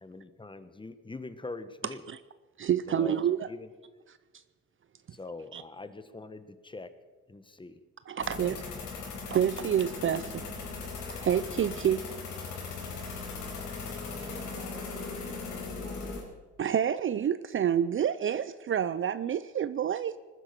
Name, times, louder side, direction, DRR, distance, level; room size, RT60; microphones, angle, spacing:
voice 1, 0.0-2.0 2.9-3.7 5.1-6.9 7.3-7.8 8.3-8.6, left 3 dB, 15° left, 1.2 m, -43 dB
voice 2, 2.6-3.5 4.3-4.4 5.1-5.2 5.5-5.6 8.1-8.6 9.3-10.4 11.1-12.1 16.6-20.2, right 9 dB, 40° right, 0.5 m, -28 dB
sound 1, 8.2-16.2, left 4 dB, 80° left, 4.6 m, -38 dB
voice 3, 14.3-16.2, right 4 dB, 75° right, 2.6 m, -48 dB
19.5 x 10.0 x 6.8 m
cardioid pair, 90°, 30 cm